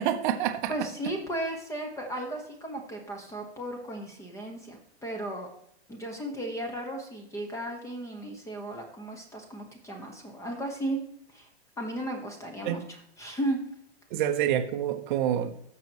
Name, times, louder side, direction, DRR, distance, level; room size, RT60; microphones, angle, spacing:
voice 1, 0.0-0.9 12.6-12.8 14.1-15.5, right 10 dB, 45° right, 6 dB, 1.1 m, -27 dB
voice 2, 0.7-5.5 5.9-11.0 11.3-11.5 11.8-12.8 13.2-13.6, right 1 dB, 10° left, 3 dB, 1.4 m, -35 dB
15.0 x 6.1 x 3.1 m, 0.69 s
hypercardioid pair, 145°, 33 cm